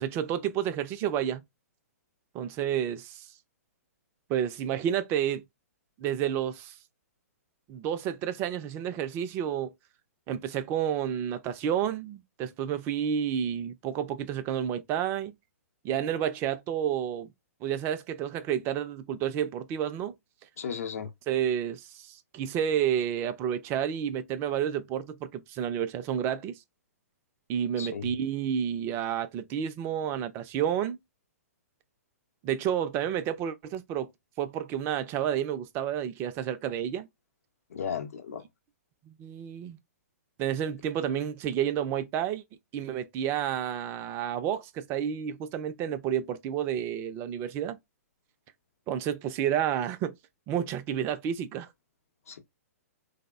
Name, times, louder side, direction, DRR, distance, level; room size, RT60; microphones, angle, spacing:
voice 1, 0.0-1.4 2.3-3.3 4.3-5.4 6.0-6.7 7.7-9.7 10.3-15.4 15.8-17.3 17.6-20.2 21.3-26.6 27.5-31.0 32.4-34.1 34.4-37.1 39.1-39.8 40.4-42.4 42.7-47.8 48.9-50.1 50.5-51.7, right 9 dB, 30° right, 0.4 m, -30 dB
voice 2, 20.6-21.1 27.8-28.1 37.7-38.4 52.3-52.4, left 7 dB, 65° left, 0.6 m, -35 dB
3.5 x 2.0 x 2.2 m
figure-of-eight pair, 120°, 8 cm